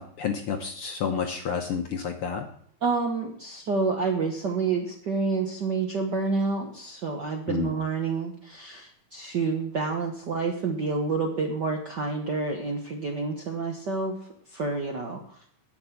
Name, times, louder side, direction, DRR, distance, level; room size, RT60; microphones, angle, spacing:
voice 1, 0.0-2.5 7.5-7.7, left 6 dB, 65° left, 4 dB, 1.5 m, -30 dB
voice 2, 2.8-14.1 14.5-15.2, right 4 dB, 60° right, 2 dB, 1.1 m, -28 dB
10.5 x 6.4 x 8.3 m, 0.63 s
omnidirectional pair, 3.4 m